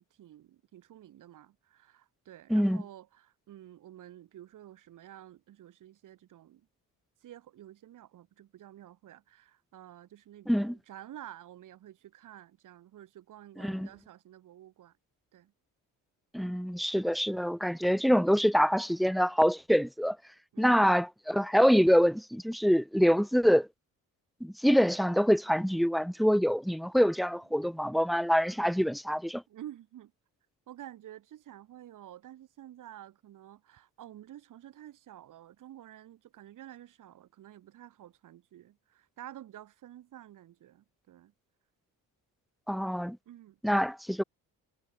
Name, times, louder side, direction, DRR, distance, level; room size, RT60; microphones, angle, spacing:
voice 1, 0.0-6.7 7.2-14.9 15.3-15.5 20.5-20.8 29.5-30.1 30.7-41.3 43.3-43.6, right 12 dB, 60° right, 5.6 m, -50 dB
voice 2, 2.5-2.8 10.5-10.8 13.6-13.9 16.3-20.2 20.6-23.7 24.4-29.4 42.7-43.2 43.6-44.2, equal, ahead, 1.4 m, -25 dB
cardioid pair, 175°, 35 cm